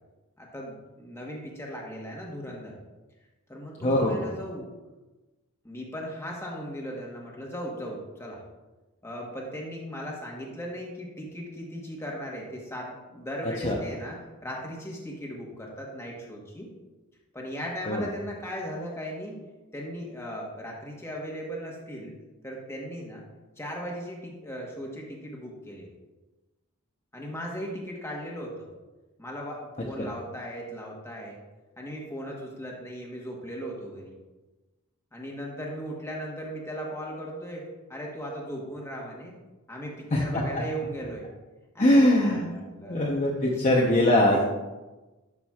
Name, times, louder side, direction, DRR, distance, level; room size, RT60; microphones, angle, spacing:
voice 1, 0.4-2.7 3.5-4.7 5.6-8.4 9.0-16.7 17.3-19.4 19.7-22.1 22.4-23.2 23.6-25.9 27.1-28.7 29.2-31.4 31.8-34.1 35.1-39.3 39.7-41.3 41.7-43.1 44.3-44.4, equal, 10° left, -2 dB, 1.2 m, -37 dB
voice 2, 3.8-4.2 13.6-13.8 17.9-18.0 30.0-30.1 40.1-40.2 41.8-42.5 42.8-44.4, left 1 dB, 35° left, -3 dB, 0.8 m, -21 dB
11.5 x 6.0 x 2.4 m, 1.1 s
head